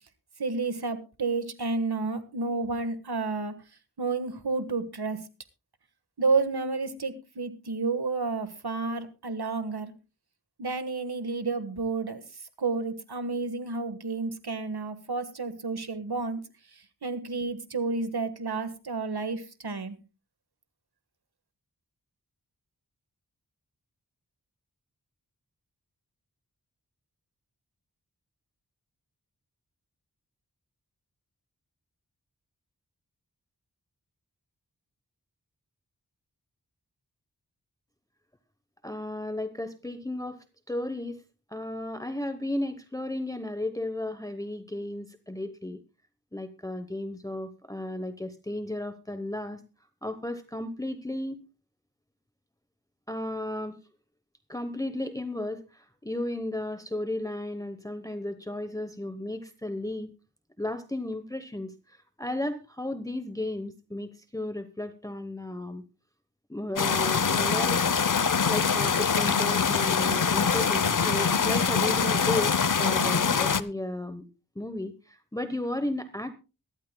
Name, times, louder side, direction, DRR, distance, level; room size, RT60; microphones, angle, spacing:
voice 1, 0.4-3.5 4.0-5.2 6.2-9.9 10.6-12.2 12.6-16.4 16.7-20.0, right 3 dB, 85° right, 10 dB, 1.5 m, -30 dB
voice 2, 38.8-41.2 41.5-45.8 46.3-49.6 50.0-51.4 53.1-53.8 54.5-60.1 60.6-65.8 66.5-68.0 68.5-74.2 74.6-76.3, left 1 dB, 10° left, 9 dB, 0.9 m, -34 dB
sound 1, 66.8-73.6, left 6 dB, 55° left, 0.7 m, -24 dB
23.0 x 12.5 x 2.2 m, 0.31 s
wide cardioid pair, 60°, 38 cm